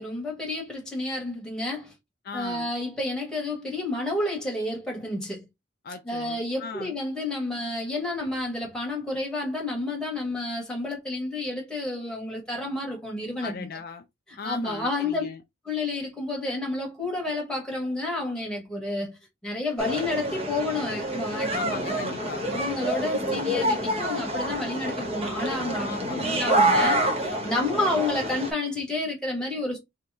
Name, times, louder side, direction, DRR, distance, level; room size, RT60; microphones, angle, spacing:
voice 1, 0.0-1.9 2.3-5.4 6.0-13.7 14.3-15.2 15.6-19.2 19.4-21.6 22.5-29.8, left 2 dB, 5° left, 1.2 m, -30 dB
voice 2, 2.2-2.7 5.8-7.0 13.4-14.1 14.4-15.4 21.5-22.5 25.8-26.4, left 5 dB, 50° left, 0.4 m, -38 dB
sound 1, 19.8-28.5, right 1 dB, 30° right, 0.8 m, -27 dB
3.0 x 2.7 x 3.4 m
head